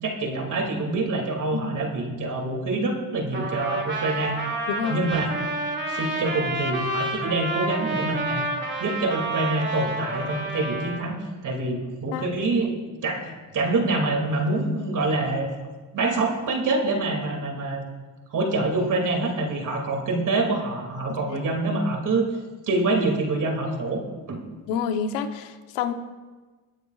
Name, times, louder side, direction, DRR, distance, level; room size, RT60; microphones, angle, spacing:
voice 1, 0.0-4.4 4.9-5.3 5.9-8.4 8.8-11.1 11.4-12.7 13.0-15.5 15.9-17.8 18.3-22.3 22.7-24.0 24.3-24.4, right 2 dB, 45° right, 2 dB, 2.4 m, -26 dB
Trumpet, 3.3-11.0, right 2 dB, 25° right, 2.6 m, -29 dB
voice 2, 4.7-5.0 12.1-12.3 21.1-21.4 24.7-25.9, left 7 dB, 80° left, 8 dB, 1.0 m, -28 dB
19.5 x 9.1 x 2.4 m, 1.3 s
supercardioid pair, 80°, 43 cm